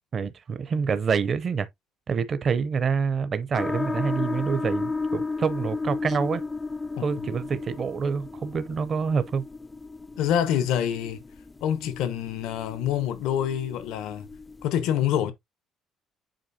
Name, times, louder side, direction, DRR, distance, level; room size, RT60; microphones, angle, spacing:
voice 1, 0.1-1.7 2.1-6.4 7.0-9.4, right 5 dB, 35° right, 0.6 m, -27 dB
sound 1, 3.5-14.7, left 3 dB, 15° left, 0.3 m, -34 dB
voice 2, 10.2-11.2 11.6-14.3 14.6-15.3, left 10 dB, 85° left, 1.0 m, -26 dB
7.6 x 4.7 x 2.7 m
cardioid pair, 145°, 0 cm